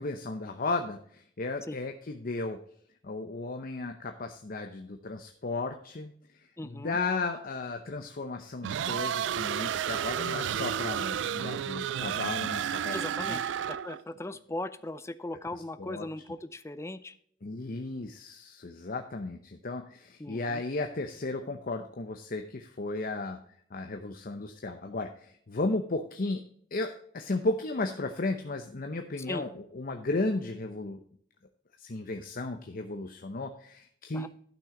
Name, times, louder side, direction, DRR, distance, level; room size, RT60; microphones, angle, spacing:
voice 1, 0.0-2.6 3.0-6.1 6.6-13.4 15.5-16.1 17.4-23.4 23.7-26.4 26.7-31.0 31.8-34.3, left 3 dB, 50° left, 6 dB, 0.7 m, -34 dB
voice 2, 6.6-7.0 12.9-17.1 20.2-20.6 29.3-29.4 34.1-34.3, left 1 dB, 15° left, 13 dB, 0.5 m, -38 dB
sound 1, 8.6-14.0, right 9 dB, 70° right, 0.3 m, -31 dB
11.5 x 6.2 x 3.7 m, 0.62 s
head